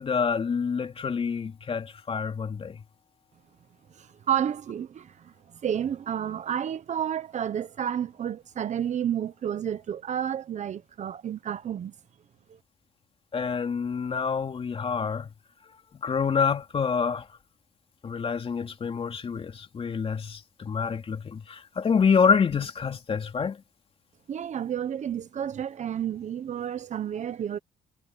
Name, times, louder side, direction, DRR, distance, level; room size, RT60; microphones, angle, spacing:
voice 1, 0.0-2.8 13.3-15.3 15.9-17.3 18.0-23.6, left 6 dB, 35° left, 3.0 m, -27 dB
voice 2, 4.0-5.3 5.6-11.9 12.5-12.6 24.3-27.6, right 9 dB, 45° right, 1.1 m, -31 dB
cardioid pair, 110°, 17 cm